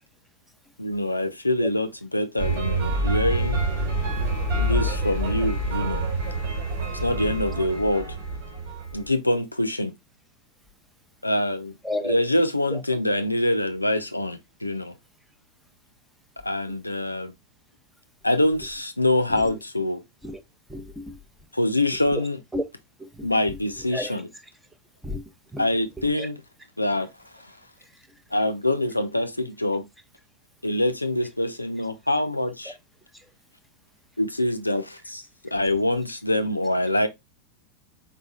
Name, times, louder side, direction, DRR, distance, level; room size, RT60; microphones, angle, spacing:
voice 1, 0.8-1.9 2.1-3.6 4.6-6.1 7.0-8.1 8.9-9.9 11.2-11.7 12.1-14.9 16.4-17.3 18.2-20.0 21.5-22.4 23.2-24.2 25.6-26.3 26.8-27.1 27.4-27.6 28.3-29.8 30.6-32.7 34.2-35.2 35.5-37.1, left 1 dB, 85° left, 0.4 m, -25 dB
sound 1, 2.4-9.1, right 2 dB, 50° right, 1.6 m, -27 dB
voice 2, 11.8-12.2 12.7-12.8 16.7-16.8 19.3-19.6 20.2-20.4 20.7-21.2 22.1-22.6 23.0-24.5 25.0-25.7 26.0-26.3 27.8-28.2 32.6-32.8 33.1-33.3, left 1 dB, 5° right, 0.6 m, -34 dB
4.1 x 4.0 x 2.3 m
figure-of-eight pair, 90°, 0 cm